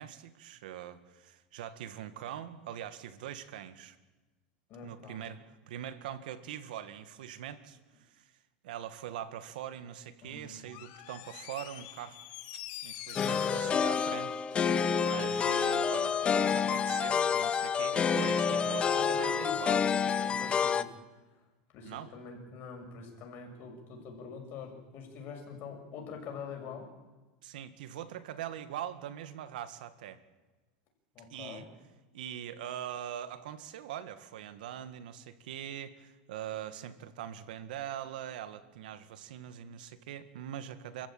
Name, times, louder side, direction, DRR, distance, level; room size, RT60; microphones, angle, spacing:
voice 1, 0.0-4.0 4.8-8.3 8.6-12.2 12.8-19.9 21.8-22.1 27.4-30.2 31.3-31.6 32.1-41.1, right 10 dB, 85° right, 12 dB, 1.9 m, -42 dB
voice 2, 4.7-5.3 10.2-10.6 13.4-13.7 18.7-19.6 20.1-21.0 21.7-26.9 31.1-31.7, left 6 dB, 45° left, 2 dB, 6.7 m, -45 dB
Door, 10.7-15.3 15.6-15.7, left 14 dB, 60° left, 2.3 m, -46 dB
sound 1, 13.2-20.8, left 6 dB, 25° left, 0.9 m, -28 dB
28.5 x 14.5 x 9.0 m, 1.2 s
supercardioid pair, 135°, 5 cm